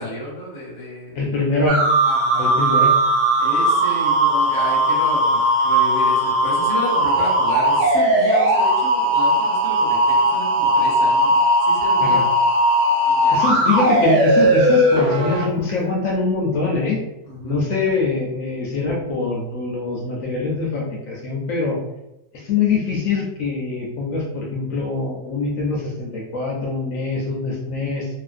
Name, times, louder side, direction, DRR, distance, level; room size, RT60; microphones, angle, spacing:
voice 1, 0.0-1.2 2.0-2.6 3.4-11.4 11.7-12.2 13.0-13.7 17.3-17.6, equal, 20° left, -5 dB, 0.6 m, -32 dB
voice 2, 1.2-1.8 2.4-2.9 12.0-12.2 13.3-17.0 17.4-21.8 22.3-28.1, left 3 dB, 70° left, -2 dB, 0.9 m, -23 dB
sound 1, 1.7-15.4, right 1 dB, 70° right, 0.4 m, -18 dB
3.0 x 2.5 x 2.4 m, 0.91 s
omnidirectional pair, 1.6 m